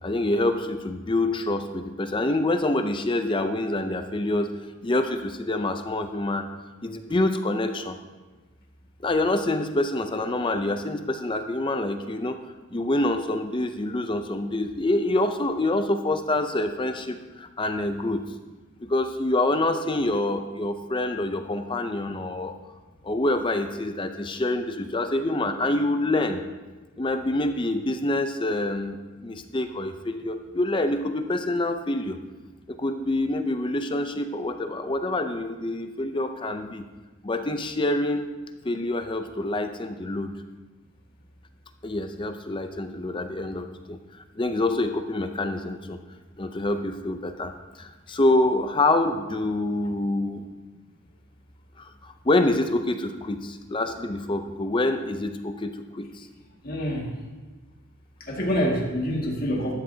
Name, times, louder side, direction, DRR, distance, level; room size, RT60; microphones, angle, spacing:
voice 1, 0.0-4.5 4.8-6.5 6.8-8.0 9.0-12.4 12.7-18.3 18.8-22.5 23.0-26.4 27.0-32.2 32.7-36.8 37.2-38.3 38.6-40.3 41.8-44.0 44.4-46.0 46.4-50.5 51.8-56.3, left 2 dB, 25° left, 8 dB, 0.5 m, -26 dB
voice 2, 56.6-57.1 58.3-59.7, equal, 45° left, -1 dB, 2.0 m, -26 dB
13.0 x 12.0 x 2.8 m, 1.2 s
head